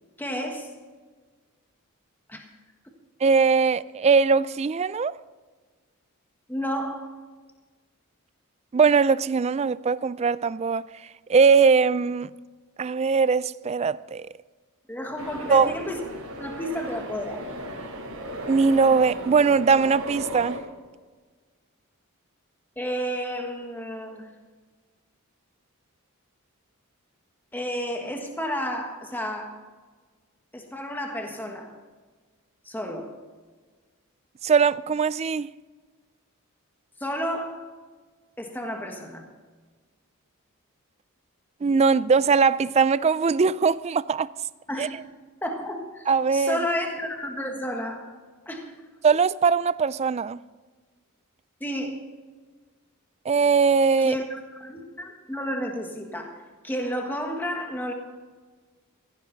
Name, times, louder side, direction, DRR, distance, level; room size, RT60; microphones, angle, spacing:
voice 1, 0.2-0.7 2.3-2.5 2.8-2.9 6.5-7.2 14.9-16.0 16.3-17.4 22.8-24.3 27.5-29.6 30.5-31.7 32.6-33.1 37.0-37.7 38.4-39.3 44.7-45.0 45.4-48.1 48.4-48.8 51.6-52.0 54.0-57.9, equal, 10° left, 1.5 m, -31 dB
voice 2, 3.2-5.2 8.7-10.8 11.3-12.3 12.8-14.3 15.5-15.7 18.5-20.6 34.4-35.5 41.6-44.3 44.8-44.9 46.1-46.6 49.0-50.4 53.3-54.1, right 5 dB, 30° right, 0.3 m, -21 dB
sound 1, 15.2-20.6, equal, 75° right, 4.1 m, -36 dB
17.0 x 15.0 x 4.0 m
head